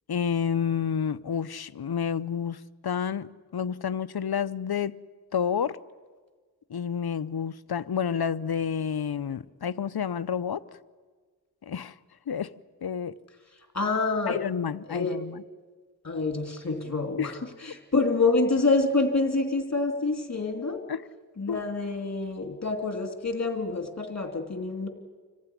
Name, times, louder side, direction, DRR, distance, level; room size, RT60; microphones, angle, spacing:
voice 1, 0.1-4.9 5.3-5.8 6.7-10.6 11.6-11.9 12.3-12.5 12.8-13.1 14.3-15.4 17.2-17.3 20.9-21.0 21.5-21.6, left 7 dB, 75° left, 0.7 m, -29 dB
voice 2, 13.7-14.4 14.9-15.2 16.0-17.3 17.6-20.8 21.4-24.9, left 3 dB, 45° left, 3.0 m, -27 dB
26.0 x 15.0 x 9.9 m
wide cardioid pair, 60°, 38 cm